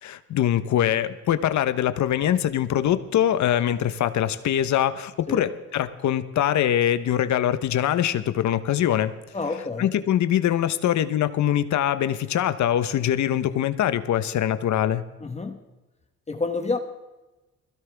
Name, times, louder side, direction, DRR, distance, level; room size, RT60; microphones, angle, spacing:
voice 1, 0.0-9.1 9.8-15.0, left 11 dB, 70° left, 12 dB, 1.0 m, -23 dB
voice 2, 9.3-9.9 15.2-15.6 16.3-16.8, left 3 dB, 20° left, 5 dB, 1.3 m, -28 dB
21.5 x 16.0 x 3.5 m, 1.1 s
cardioid pair, 90°, 30 cm